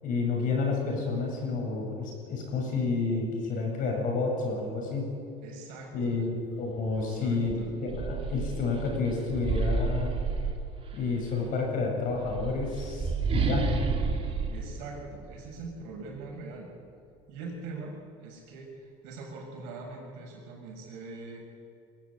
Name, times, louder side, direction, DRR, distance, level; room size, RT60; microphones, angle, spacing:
voice 1, 0.0-5.0 5.9-7.5 7.8-10.1 10.9-13.7, left 4 dB, 55° left, 0 dB, 7.6 m, -30 dB
voice 2, 5.4-6.3 6.9-7.7 14.5-16.7 17.3-21.5, right 3 dB, 75° right, 0 dB, 7.0 m, -42 dB
sound 1, 6.9-7.1 7.5-11.1 12.1-15.7, right 4 dB, 35° right, 2.6 m, -31 dB
22.0 x 15.0 x 8.5 m, 2.4 s
supercardioid pair, 115°, 17 cm